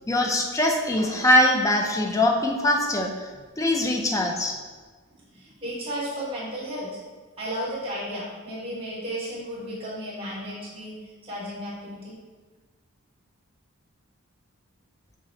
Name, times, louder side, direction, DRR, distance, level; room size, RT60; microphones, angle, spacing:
voice 1, 0.1-3.1 3.6-4.5, left 1 dB, 15° left, 2 dB, 0.4 m, -22 dB
voice 2, 5.3-7.0 7.4-12.2, equal, 25° right, -7 dB, 1.3 m, -34 dB
5.6 x 2.1 x 3.9 m, 1.4 s
head